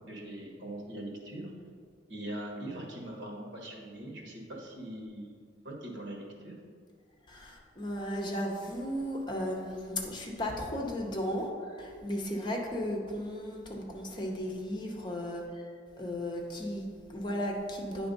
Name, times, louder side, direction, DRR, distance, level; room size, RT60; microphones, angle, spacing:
voice 1, 0.1-1.5 2.1-5.3 5.6-6.5, right 1 dB, 80° right, 0 dB, 1.3 m, -41 dB
voice 2, 7.3-15.7 16.0-18.1, equal, 25° left, 0 dB, 0.9 m, -35 dB
9.3 x 3.5 x 5.3 m, 2.1 s
head